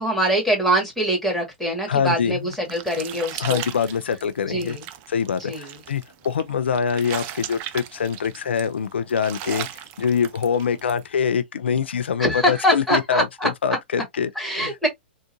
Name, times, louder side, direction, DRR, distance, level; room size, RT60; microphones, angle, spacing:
voice 1, 0.0-3.6 4.5-4.8 5.4-5.8 12.2-13.5 14.4-14.9, equal, 5° left, 1.9 m, -23 dB
voice 2, 1.9-2.4 3.4-4.8 5.1-14.7, left 7 dB, 75° left, 0.4 m, -24 dB
sound 1, 2.1-11.0, right 11 dB, 40° right, 0.5 m, -37 dB
3.7 x 2.5 x 2.7 m
hypercardioid pair, 110°, 6 cm